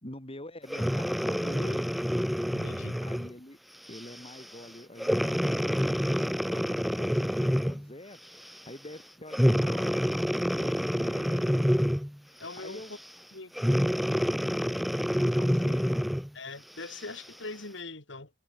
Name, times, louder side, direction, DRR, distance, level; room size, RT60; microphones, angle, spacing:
voice 1, 0.0-1.8 3.0-3.6 3.9-11.7 12.3-12.9 15.2-16.0, left 1 dB, 30° left, 5.1 m, -46 dB
Breathing, 0.7-3.3 3.9-4.2 5.0-7.9 9.3-12.2 13.6-16.3 16.9-17.0, equal, ahead, 2.3 m, -27 dB
voice 2, 2.5-3.0 12.4-12.8 13.3-13.8 16.3-18.3, left 3 dB, 80° left, 3.0 m, -41 dB
head